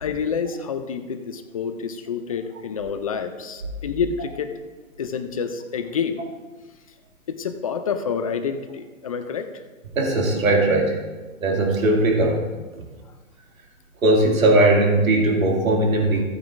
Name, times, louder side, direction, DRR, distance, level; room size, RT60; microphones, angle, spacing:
voice 1, 0.0-4.5 5.0-6.2 7.3-9.6, left 6 dB, 25° left, 8 dB, 0.4 m, -28 dB
voice 2, 9.9-10.9 11.4-12.4 14.0-16.2, right 2 dB, 80° right, 0 dB, 2.4 m, -18 dB
15.0 x 9.3 x 2.5 m, 1.3 s
hypercardioid pair, 150°, 41 cm